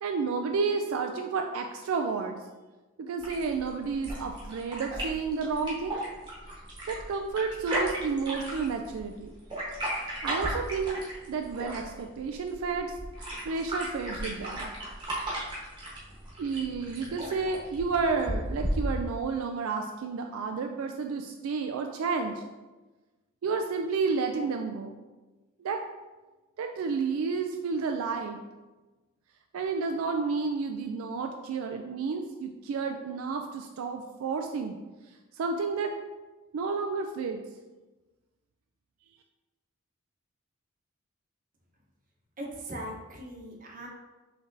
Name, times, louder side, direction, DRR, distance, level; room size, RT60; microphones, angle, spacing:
voice 1, 0.0-2.4 3.0-6.0 6.9-9.3 10.2-12.9 13.5-14.7 16.4-22.4 23.4-24.9 25.6-25.8 26.6-28.4 29.5-34.8 35.4-35.9 36.5-37.4, right 4 dB, 80° right, 4 dB, 0.3 m, -31 dB
sound 1, 3.2-19.2, right 1 dB, 20° right, 1.1 m, -36 dB
voice 2, 42.4-43.9, right 1 dB, 40° right, -2 dB, 0.9 m, -39 dB
5.8 x 3.3 x 2.6 m, 1.2 s
head